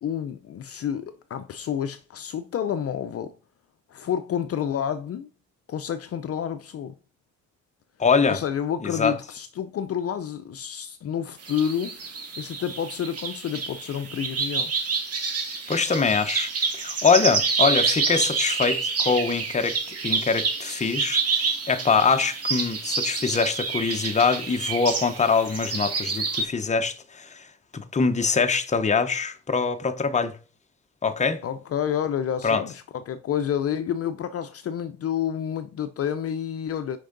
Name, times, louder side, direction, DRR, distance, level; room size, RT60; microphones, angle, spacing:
voice 1, 0.0-3.3 3.9-5.3 5.7-6.9 8.3-12.1 12.4-14.7 31.4-37.0, left 9 dB, 50° left, 0.6 m, -29 dB
voice 2, 8.0-8.4 8.8-9.1 15.7-19.8 20.0-27.5 27.7-30.3 31.0-31.4 32.4-32.6, left 5 dB, 25° left, 0.8 m, -23 dB
sound 1, 11.4-26.4, right 4 dB, 50° right, 1.9 m, -28 dB
6.5 x 5.3 x 3.9 m
cardioid pair, 90°, 30 cm